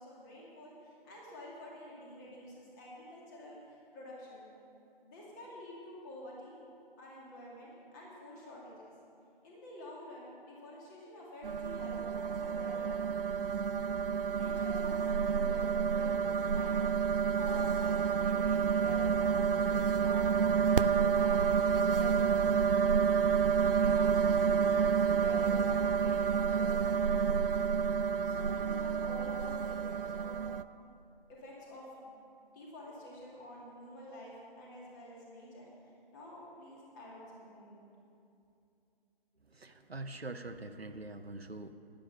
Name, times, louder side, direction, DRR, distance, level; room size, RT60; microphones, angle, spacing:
voice 1, 0.0-4.5 5.0-6.6 7.0-8.9 9.4-13.5 14.3-15.0 15.3-16.8 17.1-23.1 23.4-27.4 28.2-30.5 31.3-32.2 32.5-37.9, left 1 dB, 20° left, -5 dB, 2.3 m, -49 dB
sound 1, 11.4-30.6, right 6 dB, 70° right, 0.5 m, -29 dB
voice 2, 39.5-41.7, right 2 dB, 85° right, 8 dB, 0.9 m, -44 dB
10.5 x 10.0 x 7.0 m, 2.6 s
figure-of-eight pair, 145°, 30 cm